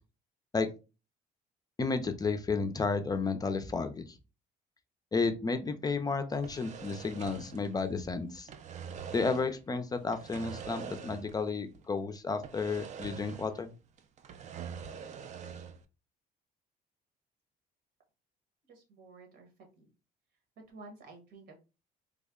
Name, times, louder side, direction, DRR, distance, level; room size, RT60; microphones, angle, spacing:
voice 1, 1.8-4.1 5.1-8.5 9.1-13.7, left 4 dB, 20° left, 8 dB, 0.4 m, -32 dB
sound 1, 6.3-8.1 8.4-9.6 10.1-11.5 11.7-11.9 12.4-13.7 14.0-15.8, right 7 dB, 45° right, 0.4 m, -44 dB
voice 2, 18.7-19.5 19.8-19.9 20.7-21.6, right 3 dB, 75° right, 2 dB, 1.4 m, -51 dB
3.4 x 2.1 x 3.6 m, 0.31 s
cardioid pair, 110°, 17 cm